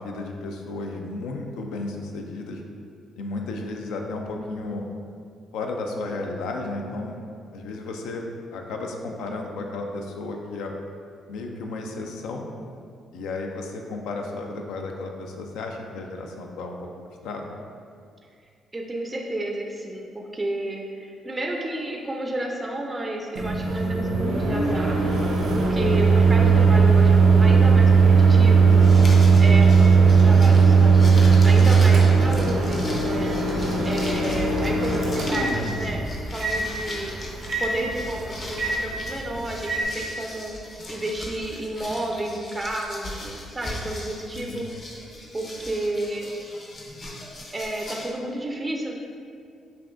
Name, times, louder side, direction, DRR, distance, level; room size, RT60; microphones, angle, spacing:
voice 1, 0.0-2.6 3.2-4.8 5.5-7.2 7.5-8.2 8.5-10.7 11.3-12.5 13.1-16.9 17.2-17.5 28.6-29.0 44.3-44.6, left 3 dB, 90° left, 2 dB, 0.4 m, -33 dB
voice 2, 18.7-25.0 25.5-28.8 29.4-31.0 31.4-33.4 33.8-37.1 37.6-44.6 45.3-46.3 47.5-48.9, right 1 dB, 20° right, 0 dB, 0.4 m, -31 dB
Microwave oven, 23.4-39.8, right 5 dB, 80° right, 0.6 m, -18 dB
sound 1, 28.7-48.1, left 1 dB, 45° left, 0.7 m, -39 dB
5.5 x 2.5 x 2.5 m, 2.3 s
cardioid pair, 90°, 0 cm